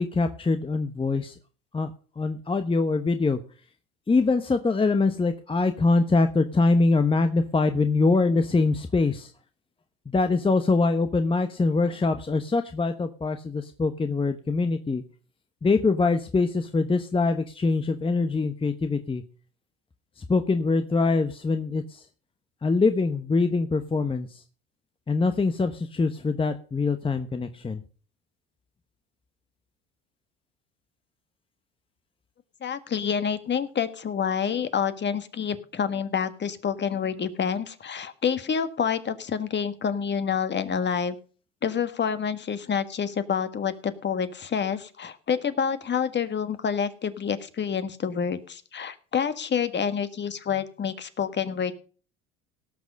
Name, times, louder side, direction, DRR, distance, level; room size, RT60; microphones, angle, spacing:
voice 1, 0.0-1.3 1.7-1.9 2.2-3.4 4.1-9.3 10.1-15.0 15.6-19.2 20.2-22.0 22.6-24.4 25.1-27.8, left 3 dB, 15° left, 8 dB, 1.0 m, -24 dB
voice 2, 32.6-41.1 41.6-51.7, left 7 dB, 35° left, 11 dB, 1.5 m, -28 dB
18.0 x 6.3 x 5.3 m, 0.40 s
hypercardioid pair, 80°, 32 cm